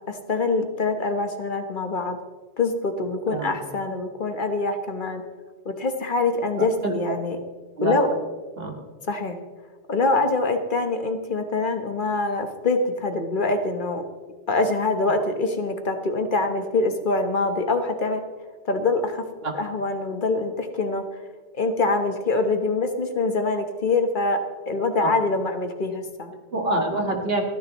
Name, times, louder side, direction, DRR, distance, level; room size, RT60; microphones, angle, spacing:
voice 1, 0.1-2.2 2.6-5.2 5.6-7.4 7.8-8.1 9.1-9.4 9.9-14.0 14.5-18.2 18.7-19.2 19.5-21.0 21.5-24.4 24.7-26.3, left 3 dB, 50° left, 6 dB, 1.3 m, -24 dB
voice 2, 7.8-8.1 8.6-8.7 19.4-19.5 25.0-25.1 26.5-27.4, right 1 dB, 60° right, 2 dB, 2.0 m, -25 dB
29.0 x 10.5 x 3.0 m, 1.4 s
omnidirectional pair, 1.1 m